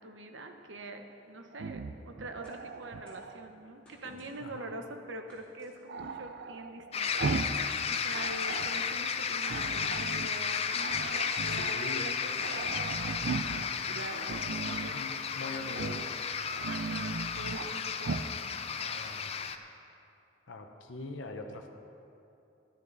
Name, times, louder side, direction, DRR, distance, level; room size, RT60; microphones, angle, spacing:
voice 1, 0.0-15.9 16.3-18.2, right 2 dB, 75° right, 5 dB, 1.0 m, -45 dB
Growling, 1.5-3.5 5.9-7.7 8.0-8.9 9.4-10.3 10.8-11.8 12.1-12.2 12.4-13.7 14.2-15.0 15.7-16.1 16.5-17.7 18.0-18.3, right 4 dB, 60° right, 0.4 m, -38 dB
sound 1, 2.4-3.3 3.9-4.6 5.3-6.2 6.9-7.4 8.3-8.9 9.5-10.0 10.5-10.7 11.6-12.0 12.3-12.8 13.2-15.1, left 1 dB, 5° left, 3.1 m, -58 dB
voice 2, 4.4-4.8 11.5-12.1 14.9-16.1 18.8-19.3 20.5-21.7, left 2 dB, 75° left, 3 dB, 0.9 m, -42 dB
sound 2, 6.9-19.6, left 6 dB, 30° left, 0.4 m, -33 dB
13.0 x 11.5 x 4.0 m, 2.7 s
head